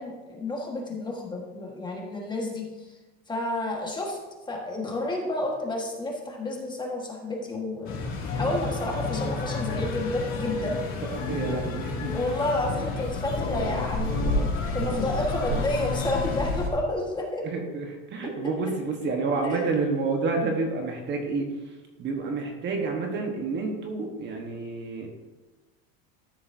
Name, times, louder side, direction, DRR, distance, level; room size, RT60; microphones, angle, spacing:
voice 1, 0.0-2.9 3.3-4.2 4.5-8.0 8.3-10.8 12.1-17.4 18.2-18.3 19.4-19.7, left 1 dB, 15° left, -1 dB, 1.5 m, -30 dB
sound 1, 7.8-16.7, left 3 dB, 40° left, 2.4 m, -30 dB
voice 2, 11.1-12.2 17.4-25.1, right 3 dB, 35° right, 2 dB, 1.3 m, -29 dB
13.0 x 6.9 x 2.7 m, 1.2 s
cardioid pair, 140°, 32 cm